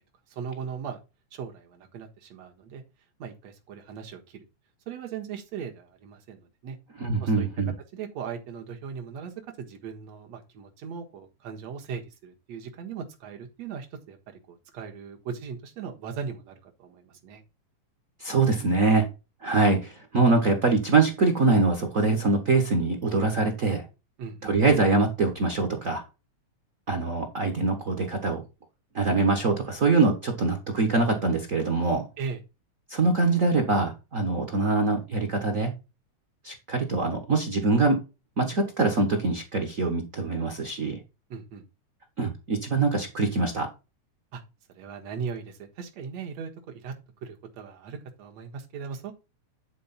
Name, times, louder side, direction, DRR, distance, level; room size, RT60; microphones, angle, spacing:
voice 1, 0.3-1.0 1.3-2.8 3.2-4.5 4.9-6.8 7.2-7.5 7.9-17.4 24.2-24.5 32.2-32.4 41.3-41.6 44.3-44.4 44.7-47.0 47.2-49.1, right 6 dB, 65° right, 4 dB, 2.6 m, -38 dB
voice 2, 7.0-7.7 18.2-19.1 19.4-23.8 24.4-26.0 26.9-28.4 28.9-32.0 32.9-35.7 36.4-38.0 38.4-41.0 42.2-43.7, right 3 dB, 40° right, 3 dB, 1.2 m, -24 dB
10.5 x 4.6 x 4.3 m, 0.28 s
omnidirectional pair, 3.3 m